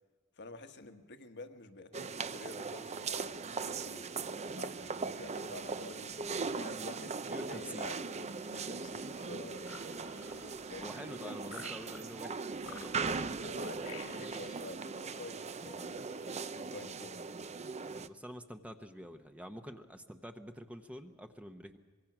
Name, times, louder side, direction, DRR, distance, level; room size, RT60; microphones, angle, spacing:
voice 1, 0.4-6.1 6.5-7.2 7.5-9.7 10.7-11.4 13.4-17.2, left 3 dB, 55° left, 7 dB, 1.4 m, -49 dB
sound 1, 1.9-18.1, right 4 dB, 30° right, 0.6 m, -39 dB
Train, 4.5-12.6, right 3 dB, 75° right, 1.5 m, -61 dB
voice 2, 7.3-8.0 9.8-10.2 10.8-13.9 17.8-21.8, equal, 5° right, 6 dB, 0.9 m, -48 dB
sound 2, 9.4-11.0 11.4-12.3 12.6-13.4 13.8-14.7, left 5 dB, 75° left, 2.4 m, -51 dB
25.0 x 22.5 x 6.0 m, 1.5 s
head